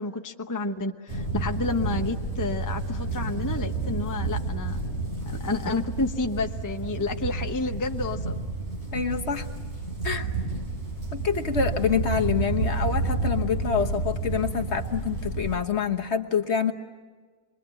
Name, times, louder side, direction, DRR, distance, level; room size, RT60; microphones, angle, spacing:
voice 1, 0.0-4.8 5.3-8.4 11.2-11.3, left 2 dB, 15° left, 4 dB, 0.9 m, -30 dB
sound 1, 1.1-15.5, right 3 dB, 50° right, 4.4 m, -30 dB
voice 2, 8.9-9.5 10.0-10.3 11.1-16.7, left 6 dB, 50° left, 4 dB, 1.4 m, -26 dB
27.0 x 22.5 x 8.9 m, 1.5 s
omnidirectional pair, 1.5 m